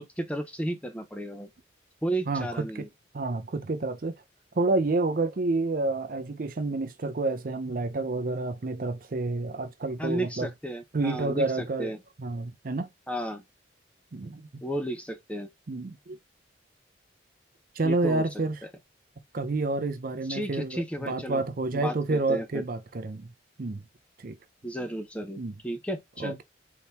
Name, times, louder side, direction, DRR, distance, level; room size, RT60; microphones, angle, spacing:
voice 1, 0.0-1.5 2.0-2.9 10.0-12.0 13.1-13.4 14.6-15.5 17.8-18.4 20.3-21.4 21.7-22.6 24.6-26.4, right 1 dB, 5° left, 0.7 m, -33 dB
voice 2, 2.3-2.9 3.1-4.2 4.6-10.5 10.9-11.9 12.2-12.9 14.1-14.5 15.7-16.2 17.8-18.6 19.3-23.3 23.6-23.8 24.2-24.4 25.4-25.5 26.2-26.4, right 3 dB, 50° right, 0.5 m, -29 dB
4.1 x 3.6 x 2.8 m
head